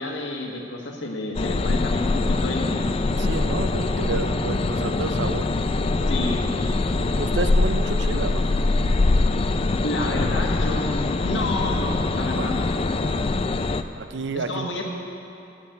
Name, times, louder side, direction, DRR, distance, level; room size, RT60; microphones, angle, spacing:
voice 1, 0.0-2.9 6.1-6.4 9.8-12.7 14.3-14.8, left 2 dB, 90° left, 0 dB, 1.7 m, -30 dB
sound 1, 1.3-13.8, left 3 dB, 30° left, 0.4 m, -23 dB
voice 2, 3.2-5.5 7.2-8.5 12.3-12.5 13.0-13.3 13.9-14.7, right 4 dB, 70° right, 11 dB, 0.5 m, -30 dB
11.0 x 8.3 x 8.0 m, 2.8 s
head